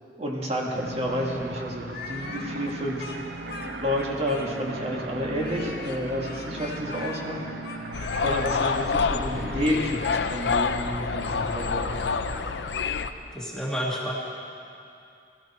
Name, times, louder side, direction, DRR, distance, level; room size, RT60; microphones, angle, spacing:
voice 1, 0.2-3.2 3.8-7.4 8.2-10.0 10.3-12.0, equal, 35° right, -1 dB, 1.9 m, -30 dB
sound 1, 0.7-12.7, right 2 dB, 75° right, 0.8 m, -38 dB
Speech, 1.9-4.8 5.4-8.6, left 3 dB, 60° left, 1.6 m, -40 dB
sound 2, 7.9-13.1, left 5 dB, 85° left, 0.5 m, -27 dB
voice 2, 13.3-14.1, equal, 5° left, -4 dB, 1.8 m, -30 dB
17.0 x 14.5 x 4.3 m, 2.6 s
head